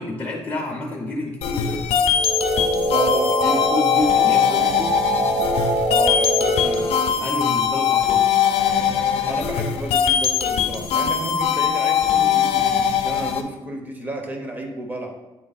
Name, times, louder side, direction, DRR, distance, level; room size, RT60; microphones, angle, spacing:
voice 1, 0.0-1.9 3.4-5.0 7.2-8.3, left 2 dB, 20° left, -2 dB, 0.7 m, -28 dB
sound 1, 1.4-13.4, left 8 dB, 70° left, 0.5 m, -21 dB
sound 2, 2.1-7.1, right 1 dB, 70° right, 1.0 m, -23 dB
voice 2, 2.9-3.6 5.9-6.8 9.2-15.1, right 2 dB, 15° right, 3 dB, 0.7 m, -31 dB
7.7 x 3.1 x 4.0 m, 1.1 s
cardioid pair, 170°, 11 cm